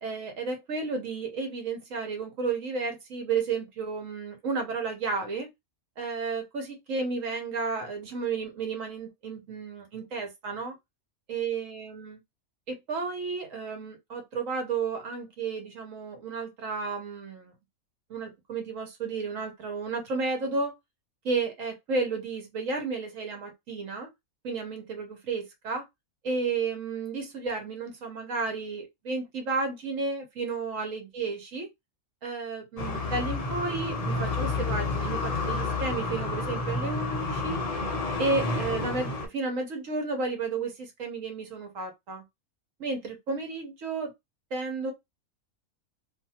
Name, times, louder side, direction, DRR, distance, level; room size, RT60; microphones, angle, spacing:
voice 1, 0.0-5.5 6.0-10.8 11.3-12.2 12.7-17.5 18.1-20.7 21.2-24.1 24.4-25.8 26.2-31.7 32.2-37.6 38.2-42.2 42.8-44.1 44.5-44.9, right 4 dB, 65° right, 1.2 m, -32 dB
sound 1, 32.8-39.3, left 3 dB, 55° left, 0.4 m, -30 dB
2.6 x 2.4 x 2.7 m
omnidirectional pair, 1.5 m